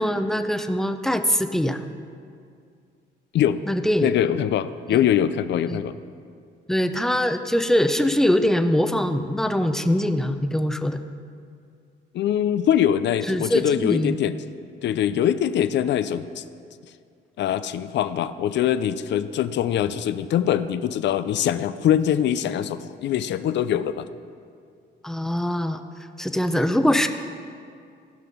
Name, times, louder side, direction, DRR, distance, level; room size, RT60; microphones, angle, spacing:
voice 1, 0.0-1.8 3.7-4.1 4.9-5.0 5.7-5.8 6.7-11.0 13.3-14.2 25.0-25.8 26.2-27.1, equal, ahead, 8 dB, 0.6 m, -22 dB
voice 2, 4.0-6.0 12.1-14.4 14.8-16.4 17.4-24.1, left 10 dB, 65° left, 13 dB, 0.5 m, -23 dB
15.0 x 5.9 x 5.4 m, 2.3 s
cardioid pair, 90°, 20 cm